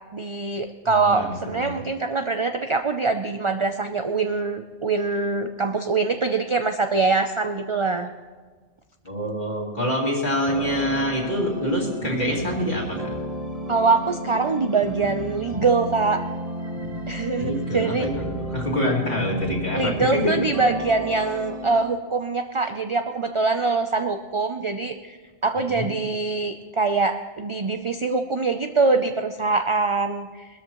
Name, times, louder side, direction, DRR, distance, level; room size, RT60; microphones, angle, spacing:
voice 1, 0.1-8.1 13.7-16.2 17.1-18.1 19.7-25.2 25.4-30.5, right 4 dB, 50° right, 7 dB, 0.3 m, -23 dB
voice 2, 0.9-1.8 9.0-13.1 17.4-20.3 25.7-25.9, equal, 40° left, -4 dB, 2.6 m, -26 dB
sound 1, 10.5-21.8, right 1 dB, 30° right, 1.2 m, -32 dB
20.5 x 13.0 x 3.0 m, 1.5 s
omnidirectional pair, 1.2 m